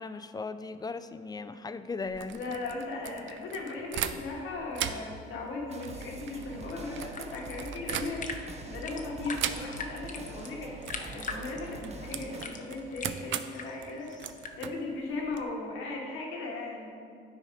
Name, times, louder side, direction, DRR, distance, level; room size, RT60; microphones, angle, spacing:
voice 1, 0.0-2.6, left 4 dB, 20° left, 11 dB, 0.4 m, -37 dB
sound 1, 2.0-4.4 4.7-8.5 9.4-10.0 10.3-10.5 10.8-15.4, right 10 dB, 70° right, 0.5 m, -39 dB
voice 2, 2.3-14.1 14.6-16.9, left 3 dB, 85° left, -2 dB, 1.7 m, -37 dB
sound 2, 5.7-12.5, right 3 dB, 35° right, 0.7 m, -45 dB
sound 3, 6.7-14.5, left 4 dB, 40° left, 0.8 m, -43 dB
12.0 x 4.2 x 5.0 m, 2.3 s
cardioid pair, 90°, 20 cm